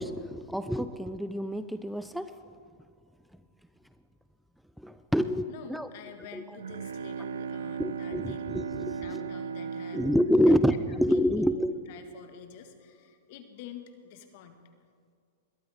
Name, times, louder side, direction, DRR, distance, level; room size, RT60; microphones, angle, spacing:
voice 1, 0.0-2.3 4.8-5.9 6.3-6.4 7.8-9.2 9.9-11.7, equal, ahead, 11 dB, 0.4 m, -27 dB
voice 2, 5.5-8.4 8.9-10.1 10.9-11.6 11.9-14.6, left 8 dB, 55° left, 7 dB, 1.6 m, -48 dB
Bowed string instrument, 6.2-11.7, right 6 dB, 85° right, 0.5 m, -37 dB
21.0 x 12.5 x 3.5 m, 2.1 s
hypercardioid pair, 115°, 0 cm